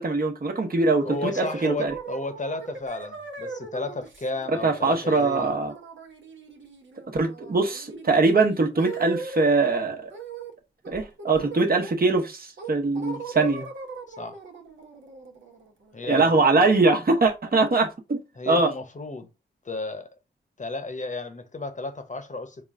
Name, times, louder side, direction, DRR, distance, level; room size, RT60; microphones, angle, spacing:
voice 1, 0.0-1.9 4.6-5.7 7.1-10.1 10.9-13.7 16.1-18.7, right 3 dB, 45° right, 1.1 m, -22 dB
voice 2, 1.0-5.5 14.1-14.4 15.9-16.6 18.4-19.3 19.6-20.1 20.6-22.6, left 3 dB, 40° left, 1.0 m, -33 dB
sound 1, 1.1-9.6 10.1-10.5 10.8-12.1 12.6-16.3, right 4 dB, 70° right, 1.0 m, -40 dB
4.2 x 2.3 x 3.6 m
supercardioid pair, 40°, 21 cm